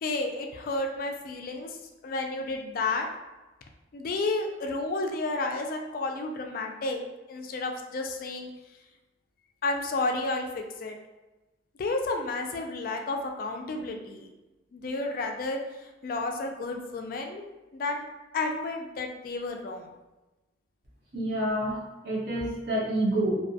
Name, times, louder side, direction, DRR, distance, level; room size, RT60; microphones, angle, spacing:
voice 1, 0.0-1.8 2.0-3.1 3.9-7.0 7.3-8.5 9.6-10.9 11.8-14.3 14.7-18.0 18.3-19.9, left 2 dB, 50° left, 3 dB, 0.3 m, -31 dB
voice 2, 21.1-21.8 22.0-23.3, right 1 dB, 65° right, -4 dB, 0.8 m, -27 dB
2.6 x 2.1 x 2.7 m, 1.1 s
head